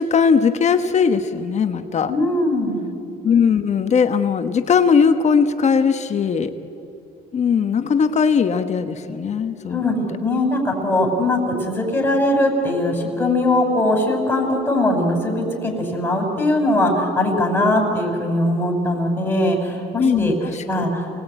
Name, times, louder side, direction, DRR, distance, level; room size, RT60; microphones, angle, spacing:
voice 1, 0.0-2.1 3.2-6.5 7.3-9.8 20.0-20.6, left 6 dB, 40° left, 8 dB, 1.3 m, -19 dB
voice 2, 2.1-2.8 9.7-20.3 20.7-21.1, left 1 dB, 10° left, -1 dB, 5.7 m, -20 dB
28.5 x 20.0 x 9.1 m, 2.7 s
cardioid pair, 110°, 17 cm